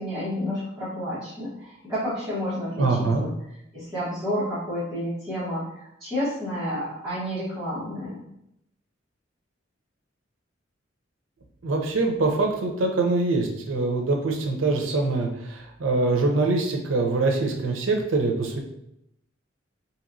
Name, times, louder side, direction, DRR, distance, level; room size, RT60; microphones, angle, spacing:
voice 1, 0.0-3.3 3.7-8.2, equal, 15° right, -13 dB, 1.2 m, -30 dB
voice 2, 2.8-3.3 11.6-18.6, right 3 dB, 90° right, 2 dB, 0.6 m, -24 dB
2.9 x 2.8 x 2.5 m, 0.80 s
head